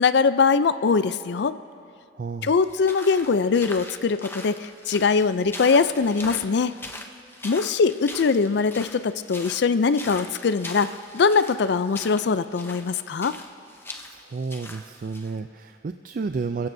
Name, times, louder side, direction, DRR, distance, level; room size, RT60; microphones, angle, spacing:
voice 1, 0.0-1.6 2.4-6.7 7.4-10.9 11.1-13.4, left 5 dB, 65° left, 13 dB, 0.4 m, -22 dB
voice 2, 2.1-2.5 14.0-16.7, right 4 dB, 50° right, 8 dB, 0.4 m, -31 dB
sound 1, 2.5-15.3, left 2 dB, 15° left, 0.7 m, -41 dB
29.0 x 15.5 x 2.7 m, 2.5 s
head